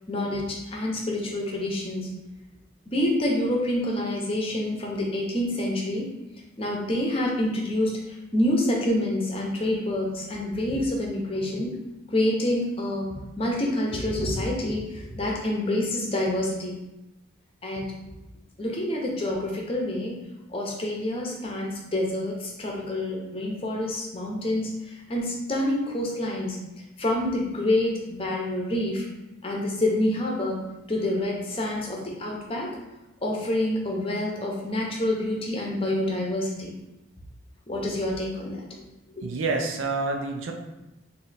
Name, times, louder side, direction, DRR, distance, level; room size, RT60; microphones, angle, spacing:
voice 1, 0.1-2.1 2.9-6.1 6.6-11.8 12.1-16.8 17.6-17.9 18.6-20.1 20.5-26.6 27.0-29.0 29.4-30.6 30.9-32.7 33.2-36.7 37.7-38.6 39.1-39.2, left 1 dB, 30° left, -2 dB, 0.7 m, -27 dB
voice 2, 39.2-40.5, right 3 dB, 90° right, 3 dB, 0.5 m, -28 dB
3.2 x 2.7 x 4.0 m, 0.98 s
head